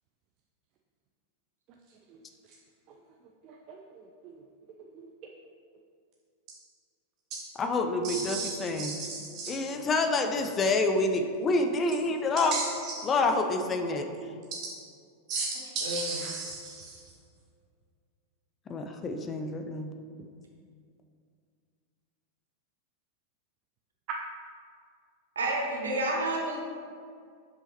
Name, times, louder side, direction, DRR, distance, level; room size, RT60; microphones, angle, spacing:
voice 1, 3.4-3.8 8.0-8.5 8.8-9.5 12.5-13.1 15.3-15.5 15.8-17.0, right 3 dB, 40° right, 1 dB, 0.5 m, -35 dB
voice 2, 7.6-9.0 9.5-12.6 13.0-14.1 18.7-19.9, left 3 dB, 25° left, 6 dB, 0.5 m, -27 dB
voice 3, 25.3-26.6, right 2 dB, 70° right, -1 dB, 1.2 m, -29 dB
7.0 x 5.5 x 2.9 m, 2.2 s
figure-of-eight pair, 90°, 0 cm